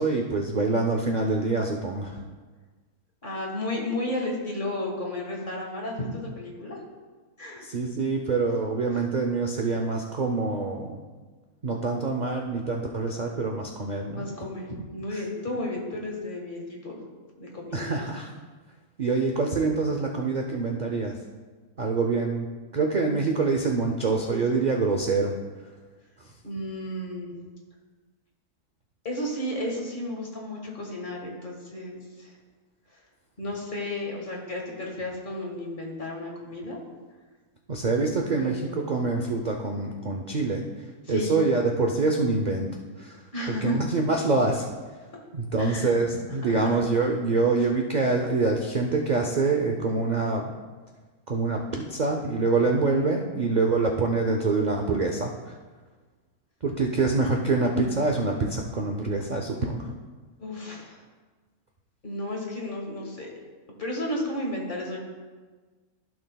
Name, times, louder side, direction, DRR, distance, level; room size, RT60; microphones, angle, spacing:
voice 1, 0.0-2.2 7.6-11.0 11.6-14.3 14.8-15.2 17.7-18.3 19.0-21.2 21.8-22.5 22.7-25.3 26.2-26.3 37.7-42.7 43.0-43.2 43.5-44.7 45.3-50.5 51.3-55.5 56.6-59.9, right 3 dB, 55° right, 2 dB, 0.4 m, -25 dB
voice 2, 3.2-6.8 7.4-7.6 14.1-17.0 17.4-17.9 26.4-27.3 29.0-32.3 32.9-33.0 33.4-36.8 38.4-39.0 41.0-41.3 43.3-43.8 45.6-45.9 46.6-46.8 60.4-61.0 62.0-63.3 63.8-65.0, left 1 dB, 35° left, -1 dB, 1.6 m, -33 dB
15.0 x 6.1 x 2.3 m, 1.4 s
omnidirectional pair, 1.6 m